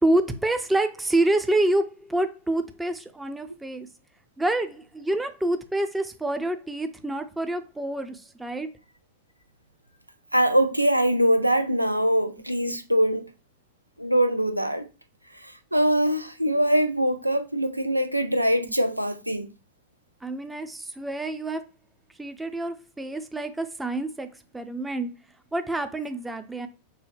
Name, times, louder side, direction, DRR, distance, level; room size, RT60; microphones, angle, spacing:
voice 1, 0.0-3.9 4.4-8.7 20.2-21.6 22.2-25.1 25.5-26.7, right 1 dB, 10° right, 0.6 m, -27 dB
voice 2, 10.3-13.3 14.0-14.9 15.7-19.5, right 1 dB, 90° right, 0.4 m, -23 dB
6.0 x 2.2 x 3.3 m
figure-of-eight pair, 90°, 0 cm